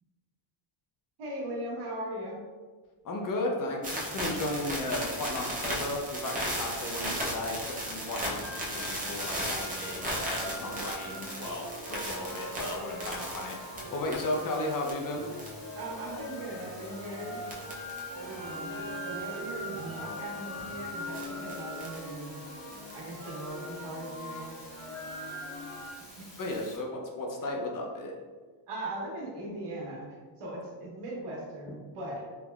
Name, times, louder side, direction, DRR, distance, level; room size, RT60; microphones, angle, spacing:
voice 1, 1.2-2.4 15.8-17.4 18.2-22.4 22.9-24.7 26.2-26.3 28.7-32.3, right 1 dB, 80° right, -3 dB, 1.1 m, -39 dB
voice 2, 3.0-15.3 26.4-28.1, left 1 dB, 45° left, 0 dB, 0.4 m, -35 dB
sound 1, 3.8-14.9 15.3-15.8 16.8-17.0 17.5-18.0 18.3-18.4 19.8-20.0 21.1-22.1 22.7-23.4, right 1 dB, 20° right, 0.4 m, -36 dB
sound 2, 8.4-25.9, equal, 70° left, 1.2 m, -41 dB
sound 3, 8.9-26.8, left 1 dB, 15° left, 0.9 m, -51 dB
3.4 x 2.9 x 2.3 m, 1.5 s
cardioid pair, 160°, 50 cm